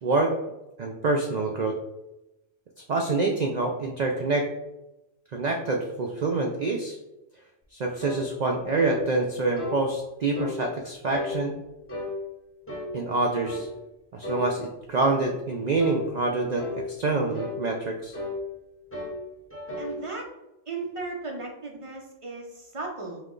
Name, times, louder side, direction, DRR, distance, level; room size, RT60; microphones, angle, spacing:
voice 1, 0.0-0.3 0.8-1.7 2.9-4.5 5.3-7.0 7.7-11.5 12.9-13.7 14.1-18.1, right 3 dB, 85° right, 2 dB, 0.3 m, -26 dB
sound 1, 8.0-8.2 8.8-9.0 9.6-9.8 10.3-10.6 11.1-11.4 11.9-12.1 12.7-12.9 13.4-13.7 14.2-14.5 15.0-15.3 15.8-16.0 16.6-16.8 17.3-17.6 18.1-18.4 18.9-19.2 19.5-19.9, left 2 dB, 10° left, 0.7 m, -34 dB
voice 2, 19.8-20.3 20.7-23.2, right 3 dB, 35° right, 0 dB, 0.6 m, -36 dB
4.9 x 2.2 x 3.7 m, 0.93 s
omnidirectional pair, 1.3 m